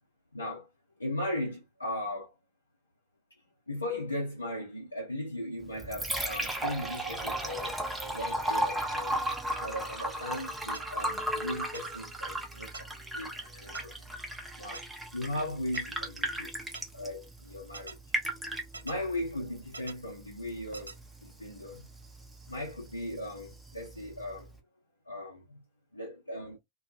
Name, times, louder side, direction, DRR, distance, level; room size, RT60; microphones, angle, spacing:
voice 1, 0.3-0.7 1.0-2.3 3.7-9.2 9.6-14.0 14.6-14.8 15.1-16.5 16.9-18.0 18.8-21.0 21.2-21.9 22.5-24.5 25.1-25.6 25.9-26.6, left 1 dB, 80° left, 0.8 m, -37 dB
Liquid, 5.6-24.6, right 1 dB, 5° right, 0.7 m, -36 dB
sound 1, 10.7-10.8 11.7-11.8 12.7-12.8 13.7-13.8 14.7-14.8 15.7-15.8 16.7-16.8 17.7-17.9 18.7-19.0 19.7-19.9 20.7-21.0, right 3 dB, 80° right, 0.3 m, -42 dB
2.3 x 2.3 x 2.7 m
figure-of-eight pair, 90°, 0 cm